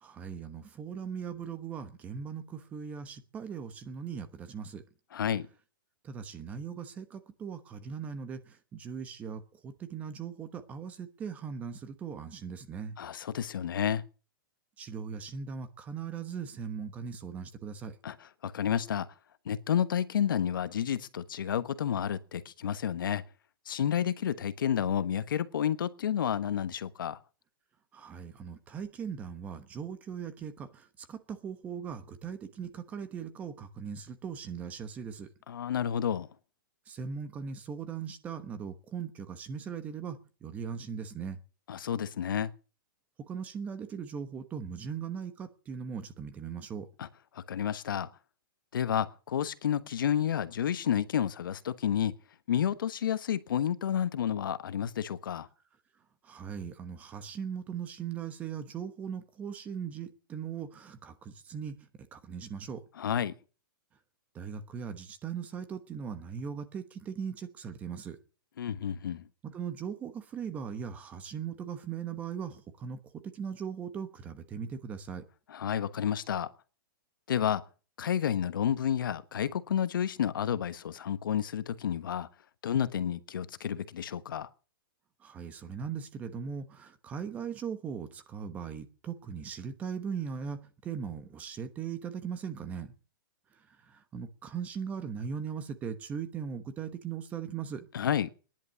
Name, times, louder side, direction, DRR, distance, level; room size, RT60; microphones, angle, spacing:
voice 1, 0.0-4.8 6.0-13.0 14.8-17.9 27.9-35.3 36.9-41.4 43.3-46.9 56.2-61.7 62.1-62.8 64.3-68.2 69.4-75.2 85.2-92.9 93.9-97.9, right 7 dB, 10° right, 1.1 m, -39 dB
voice 2, 5.1-5.5 13.0-14.0 18.0-19.1 19.4-23.2 23.7-27.2 35.5-36.3 41.7-42.5 47.0-47.1 47.3-48.1 48.7-52.1 52.5-55.5 63.0-63.3 68.6-69.2 75.5-76.5 77.3-77.6 78.0-82.3 82.6-84.5 97.9-98.3, left 9 dB, 70° left, 1.2 m, -30 dB
18.5 x 10.5 x 6.9 m
hypercardioid pair, 170°, 12 cm